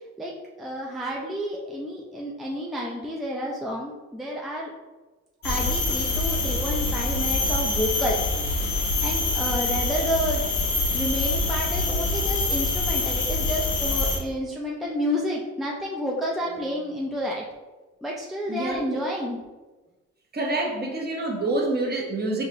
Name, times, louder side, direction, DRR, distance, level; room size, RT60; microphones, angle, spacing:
voice 1, 0.6-4.7 5.4-8.3 9.0-10.4 10.9-17.4 18.0-19.4, equal, ahead, -2 dB, 0.5 m, -30 dB
sound 1, 5.4-14.2, left 3 dB, 90° left, 1.0 m, -25 dB
voice 2, 18.5-19.0 20.3-22.5, right 2 dB, 35° right, 0 dB, 0.9 m, -27 dB
4.8 x 2.4 x 2.8 m, 1.2 s
cardioid pair, 90°, 30 cm